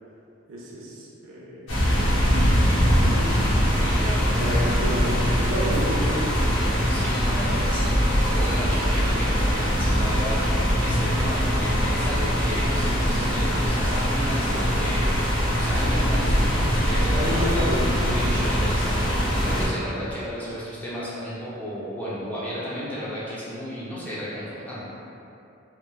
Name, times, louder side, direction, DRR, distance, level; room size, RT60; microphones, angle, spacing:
voice 1, 0.5-1.7 2.9-3.7 4.4-6.7 17.1-18.2, equal, 80° right, -5 dB, 0.5 m, -30 dB
sound 1, 1.7-19.7, equal, 80° left, 0.6 m, -22 dB
voice 2, 3.8-4.4 6.9-17.5 18.1-24.8, equal, 10° left, -10 dB, 0.5 m, -34 dB
2.9 x 2.2 x 2.2 m, 2.7 s
head